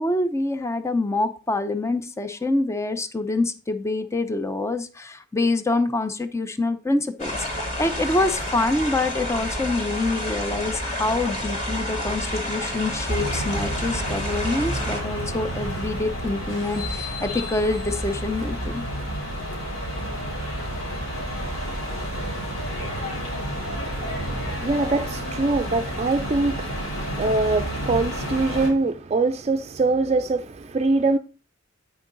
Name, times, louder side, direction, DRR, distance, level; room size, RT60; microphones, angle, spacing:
voice 1, 0.0-18.9, left 2 dB, 15° left, 0.6 m, -26 dB
sound 1, 7.2-15.0, left 1 dB, 35° left, 3.1 m, -29 dB
sound 2, 13.0-28.7, equal, 90° left, 3.8 m, -30 dB
voice 2, 23.5-31.2, right 3 dB, 30° right, 0.5 m, -24 dB
9.0 x 6.4 x 3.9 m
head